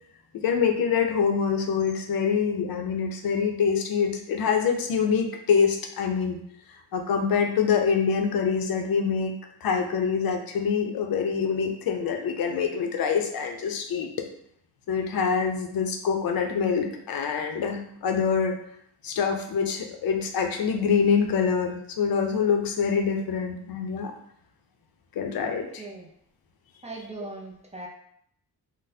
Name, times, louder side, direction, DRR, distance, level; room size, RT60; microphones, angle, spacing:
voice 1, 0.4-6.4 6.9-9.3 9.6-14.1 14.9-18.6 19.0-24.1 25.2-25.8, left 6 dB, 65° left, 3 dB, 0.5 m, -25 dB
voice 2, 25.8-26.1 26.8-27.9, right 2 dB, 20° right, -2 dB, 0.4 m, -39 dB
3.9 x 2.1 x 2.6 m, 0.68 s
wide cardioid pair, 140°, 39 cm